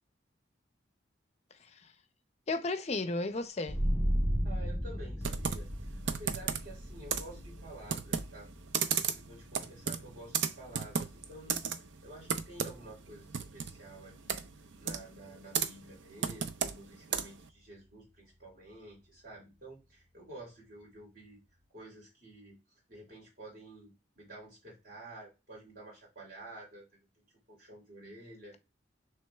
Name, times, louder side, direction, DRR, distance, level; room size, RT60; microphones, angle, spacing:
voice 1, 1.6-1.9 2.5-3.8, left 2 dB, 35° left, 0.5 m, -34 dB
sound 1, 3.7-14.9, equal, 5° right, 1.6 m, -37 dB
voice 2, 4.4-8.5 8.9-21.4 21.7-22.6 22.9-27.2 27.5-28.6, right 1 dB, 55° right, 3.1 m, -51 dB
Computer keyboard, 5.2-17.5, right 7 dB, 85° right, 0.5 m, -36 dB
6.2 x 3.4 x 2.3 m
head